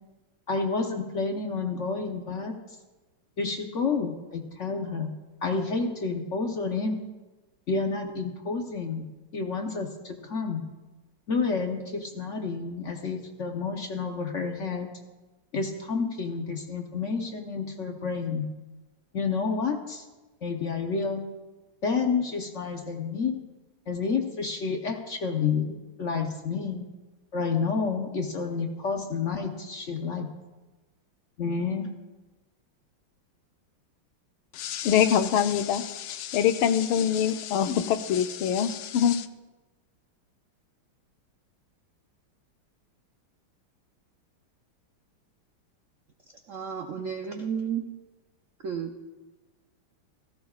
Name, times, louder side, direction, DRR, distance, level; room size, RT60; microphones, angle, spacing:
voice 1, 0.5-2.5 3.4-5.1 5.4-7.0 7.7-9.1 9.3-10.7 11.3-14.9 15.5-18.5 19.1-20.0 20.4-21.2 21.8-23.4 23.9-26.8 27.3-30.3 31.4-31.9, left 4 dB, 60° left, 3 dB, 0.8 m, -29 dB
voice 2, 34.5-39.3, left 9 dB, 80° left, 10 dB, 1.4 m, -24 dB
voice 3, 46.5-47.8 48.6-48.9, right 7 dB, 85° right, 4 dB, 0.7 m, -32 dB
16.5 x 15.0 x 2.4 m, 1.2 s
omnidirectional pair, 2.4 m